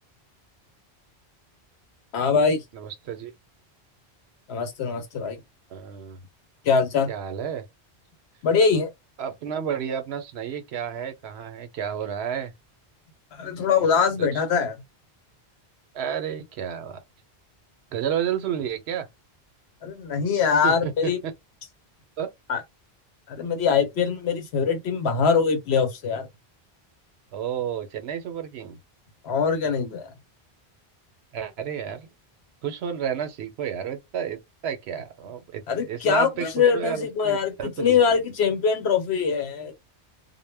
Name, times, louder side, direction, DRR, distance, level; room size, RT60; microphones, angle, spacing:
voice 1, 2.1-2.6 4.5-5.4 6.6-7.1 8.4-8.9 13.3-14.8 19.8-21.2 22.5-22.6 23.3-26.3 29.2-30.1 35.7-39.7, left 6 dB, 75° left, 1.0 m, -23 dB
voice 2, 2.7-3.3 5.7-6.2 7.1-7.7 9.2-12.5 14.2-14.4 15.9-17.0 17.9-19.1 20.6-21.3 22.2-22.3 27.3-28.8 31.3-32.1 32.6-35.6 35.9-38.2, right 8 dB, 75° right, 0.8 m, -31 dB
2.1 x 2.1 x 3.3 m
omnidirectional pair, 1.1 m